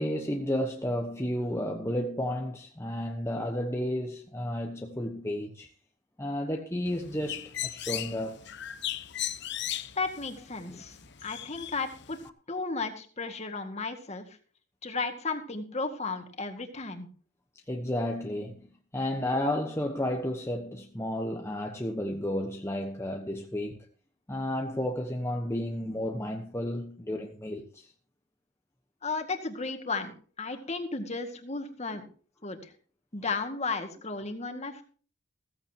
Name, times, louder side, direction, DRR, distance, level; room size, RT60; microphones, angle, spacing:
voice 1, 0.0-5.7 6.2-8.4 10.7-10.8 17.7-18.7 18.9-23.8 24.3-27.9, left 1 dB, 15° left, 1.1 m, -32 dB
Bird, 6.9-12.3, left 12 dB, 55° left, 0.9 m, -38 dB
voice 2, 10.0-12.2 12.5-14.2 14.8-17.1 29.0-32.0 32.4-32.7 33.1-34.8, left 3 dB, 35° left, 2.0 m, -34 dB
16.0 x 14.5 x 2.9 m
head